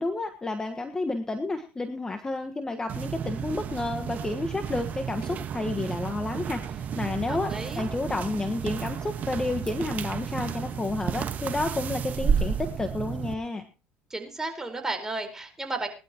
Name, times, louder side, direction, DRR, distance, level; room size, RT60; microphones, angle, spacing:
voice 1, 0.0-13.6, left 2 dB, 20° left, 6 dB, 1.4 m, -31 dB
sound 1, 2.9-13.3, right 7 dB, 45° right, 1.4 m, -32 dB
voice 2, 7.2-7.8 14.1-15.9, right 3 dB, 15° right, 4 dB, 4.5 m, -33 dB
20.5 x 11.5 x 3.0 m, 0.32 s
supercardioid pair, 85°, 4 cm